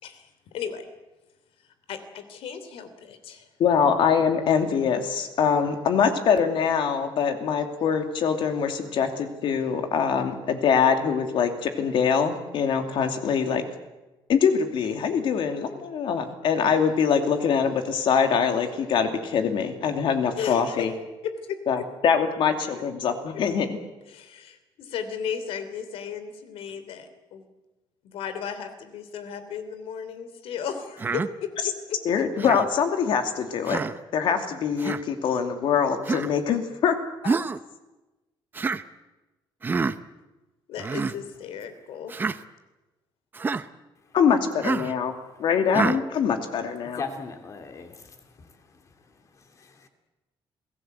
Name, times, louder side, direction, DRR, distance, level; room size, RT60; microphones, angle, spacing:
voice 1, 0.0-0.8 1.9-3.5 20.4-20.9 21.2-21.8 24.1-27.4 28.0-32.2 40.7-42.2, left 7 dB, 85° left, 10 dB, 3.3 m, -35 dB
voice 2, 3.6-13.6 14.3-20.9 21.7-23.8 32.0-33.8 34.1-36.9 44.1-45.1 45.4-47.0, left 6 dB, 60° left, 6 dB, 2.7 m, -23 dB
Human voice, 31.0-31.3 32.4-32.7 33.7-34.0 34.8-35.0 36.0-36.3 37.2-37.6 38.5-38.8 39.6-40.0 40.8-41.1 42.1-42.4 43.3-43.6 44.6-44.9 45.7-46.0, right 4 dB, 20° right, 0.7 m, -27 dB
voice 3, 46.9-48.2 49.6-49.9, left 5 dB, 35° left, 6 dB, 2.8 m, -37 dB
27.5 x 18.0 x 8.1 m, 1.1 s
cardioid pair, 175°, 10 cm